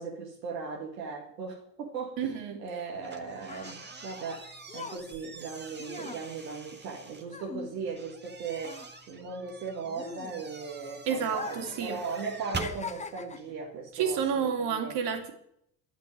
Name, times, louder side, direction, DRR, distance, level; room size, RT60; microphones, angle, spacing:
voice 1, 0.0-15.0, right 5 dB, 75° right, 2.1 m, -38 dB
voice 2, 2.2-2.6 11.1-12.0 13.9-15.3, right 7 dB, 55° right, 3.0 m, -30 dB
sound 1, 3.0-8.3 8.6-10.7 11.3-11.8 12.1-13.6 14.3-14.5, left 4 dB, 15° left, 1.0 m, -42 dB
sound 2, 3.0-7.2 8.0-12.8, right 4 dB, 20° right, 1.8 m, -44 dB
12.0 x 8.1 x 9.6 m
figure-of-eight pair, 65°, 50 cm